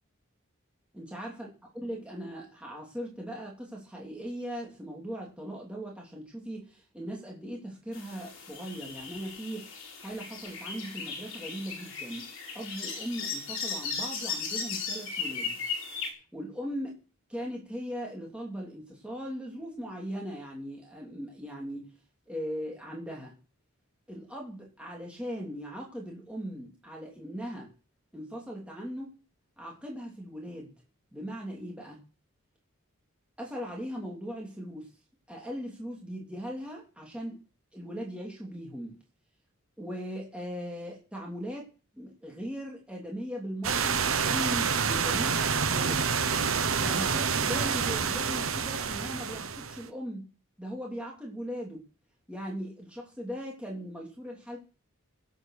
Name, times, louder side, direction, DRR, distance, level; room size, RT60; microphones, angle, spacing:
voice 1, 0.9-1.5 1.7-9.7 10.0-12.3 12.5-15.6 16.3-17.0 17.3-21.9 22.3-23.3 24.1-27.7 28.1-29.2 29.6-30.7 31.1-32.0 33.4-34.9 35.3-37.4 37.7-39.0 39.8-41.7 41.9-46.1 46.8-50.3 50.6-51.8 52.3-54.6, equal, 5° right, -2 dB, 2.9 m, -39 dB
sound 1, 7.9-16.1, left 5 dB, 65° left, 4.5 m, -37 dB
sound 2, 43.6-49.9, right 6 dB, 70° right, 1.1 m, -28 dB
17.0 x 7.9 x 6.5 m, 0.35 s
head